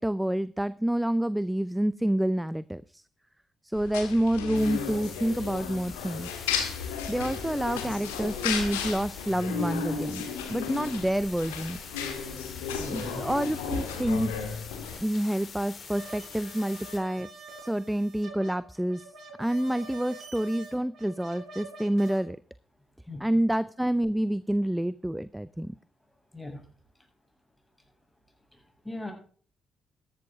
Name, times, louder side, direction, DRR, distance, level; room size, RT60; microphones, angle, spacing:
voice 1, 0.0-3.0 3.6-6.3 7.1-11.9 12.9-14.3 15.0-17.3 17.6-19.1 19.4-22.4 23.2-25.7, right 1 dB, 5° right, 17 dB, 0.6 m, -28 dB
sound 1, 3.7-15.0, left 6 dB, 85° left, 1.9 m, -34 dB
sound 2, 4.5-17.0, left 5 dB, 55° left, 3.6 m, -45 dB
voice 2, 12.8-13.3 19.9-20.0 23.1-23.4 26.3-26.6 28.5-29.1, left 1 dB, 10° left, 2 dB, 7.0 m, -40 dB
sound 3, 15.9-22.2, right 2 dB, 60° right, 5.9 m, -47 dB
14.0 x 11.5 x 3.7 m, 0.43 s
hypercardioid pair, 45°, 0 cm